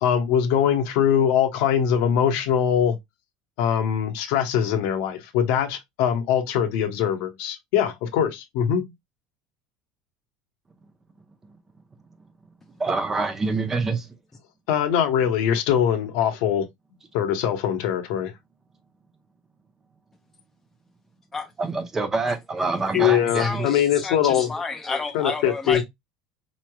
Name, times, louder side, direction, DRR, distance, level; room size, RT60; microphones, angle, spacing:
voice 1, 0.0-3.0 3.6-8.9 14.7-16.7 17.1-18.3 22.9-24.5 25.1-25.8, left 9 dB, 70° left, 0.8 m, -22 dB
voice 2, 12.8-14.0 21.6-23.6, right 3 dB, 20° right, 0.7 m, -26 dB
voice 3, 22.6-23.0 23.4-25.8, left 3 dB, 10° left, 0.4 m, -31 dB
4.2 x 3.2 x 2.2 m
supercardioid pair, 135°, 2 cm